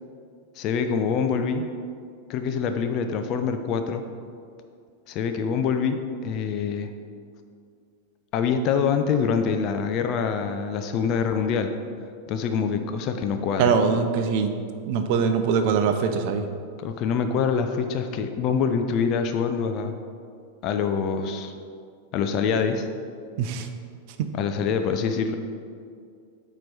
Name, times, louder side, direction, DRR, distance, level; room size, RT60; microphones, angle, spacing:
voice 1, 0.6-1.7 2.3-4.0 5.1-6.9 8.3-11.7 12.3-13.8 16.8-20.0 20.6-21.5 22.1-22.9 24.3-25.4, left 6 dB, 40° left, 7 dB, 0.4 m, -25 dB
voice 2, 13.6-14.5 14.8-16.5 23.4-23.7 24.2-24.3, right 6 dB, 45° right, 8 dB, 0.5 m, -22 dB
8.6 x 3.1 x 4.1 m, 2.3 s
figure-of-eight pair, 90°, 0 cm